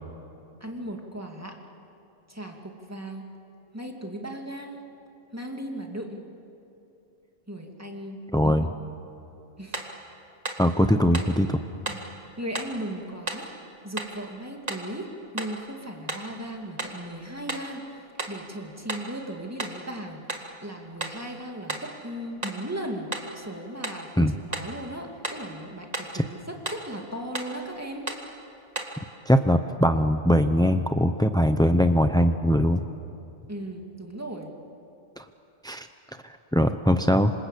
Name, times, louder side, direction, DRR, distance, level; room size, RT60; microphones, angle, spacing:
voice 1, 0.6-1.6 2.3-3.3 3.7-4.8 5.3-6.2 7.5-8.5 9.6-9.9 11.9-12.0 12.4-13.5 13.8-28.0 33.5-34.5, right 1 dB, 10° right, 1 dB, 2.5 m, -37 dB
voice 2, 8.3-8.7 10.6-11.6 24.2-24.4 26.1-26.2 29.3-32.8 35.2-35.3 35.6-35.9 36.2-37.3, equal, 5° left, 8 dB, 0.3 m, -21 dB
sound 1, 9.7-10.0 10.4-10.7 11.1-11.4 11.9-12.1 12.5-12.8 13.3-13.5 14.0-14.2 14.7-14.9 15.4-15.6 16.1-16.3 16.8-17.0 17.5-17.7 18.2-18.4 18.9-19.1 19.6-19.9 20.3-20.5 21.0-21.2 21.7-21.9 22.4-22.7 23.1-23.3 23.8-24.1 24.5-24.8 25.2-25.5 25.9-26.2 26.6-26.9 27.3-27.6 28.1-28.3 28.8-29.0, right 2 dB, 25° right, 2.1 m, -34 dB
27.0 x 26.5 x 8.4 m, 2.8 s
omnidirectional pair, 1.5 m